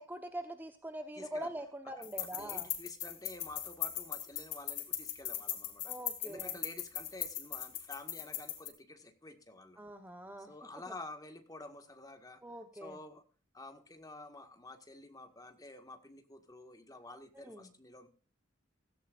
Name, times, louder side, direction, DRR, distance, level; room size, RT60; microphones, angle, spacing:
voice 1, 0.0-2.7 5.9-6.6 9.8-10.5 12.4-13.0 17.3-17.7, right 1 dB, 10° right, 6 dB, 1.1 m, -43 dB
voice 2, 1.2-1.5 1.8-6.0 6.2-9.8 10.4-12.4 12.8-13.2 13.5-18.1, left 2 dB, 20° left, 6 dB, 1.8 m, -50 dB
sound 1, 2.0-8.7, left 12 dB, 85° left, 3.0 m, -39 dB
16.5 x 16.0 x 2.6 m, 0.38 s
head